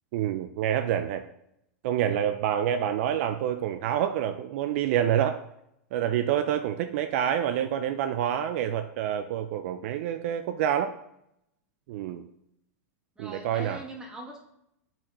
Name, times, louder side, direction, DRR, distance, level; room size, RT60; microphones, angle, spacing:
voice 1, 0.1-1.2 1.8-5.4 5.9-10.9 11.9-12.2 13.2-13.8, right 10 dB, 60° right, 8 dB, 0.4 m, -27 dB
voice 2, 13.2-14.4, right 1 dB, 10° right, -1 dB, 1.3 m, -41 dB
7.5 x 4.3 x 3.0 m, 0.78 s
supercardioid pair, 135°, 8 cm